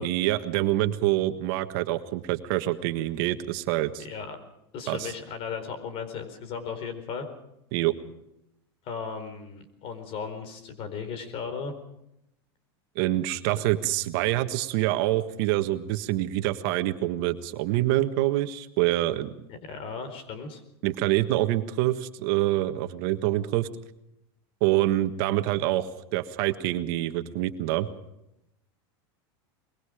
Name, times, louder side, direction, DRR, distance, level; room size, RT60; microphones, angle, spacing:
voice 1, 0.0-4.0 4.9-5.1 7.7-7.9 12.9-19.3 20.8-23.7 24.6-27.9, right 15 dB, 60° right, 9 dB, 1.5 m, -26 dB
voice 2, 4.0-4.4 4.7-7.3 8.8-11.7 13.6-13.7 19.5-20.6, left 6 dB, 45° left, 10 dB, 4.4 m, -36 dB
24.0 x 22.0 x 5.0 m, 0.82 s
supercardioid pair, 130°, 13 cm